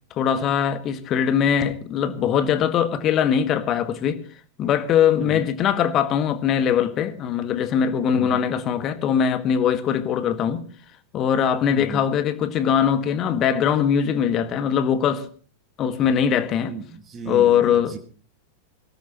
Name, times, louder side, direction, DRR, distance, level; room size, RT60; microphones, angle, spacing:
voice 1, 0.1-4.2 4.6-10.7 11.1-15.3 15.8-16.8 17.3-18.0, left 8 dB, 30° left, 1.7 m, -21 dB
voice 2, 11.7-12.0 16.7-18.0, right 5 dB, 20° right, 1.8 m, -35 dB
21.5 x 18.0 x 3.0 m
figure-of-eight pair, 90°, 0 cm